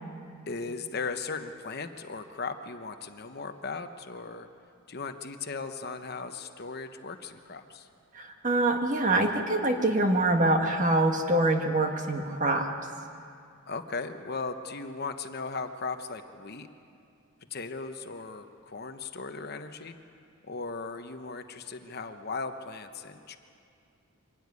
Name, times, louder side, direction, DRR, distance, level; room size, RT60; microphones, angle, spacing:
voice 1, 0.5-4.5 4.9-7.9 13.7-16.7 17.5-20.0 20.4-23.4, left 4 dB, 45° left, 7 dB, 1.0 m, -37 dB
voice 2, 8.1-12.7, right 2 dB, 35° right, 3 dB, 1.6 m, -25 dB
24.5 x 13.5 x 9.5 m, 2.4 s
head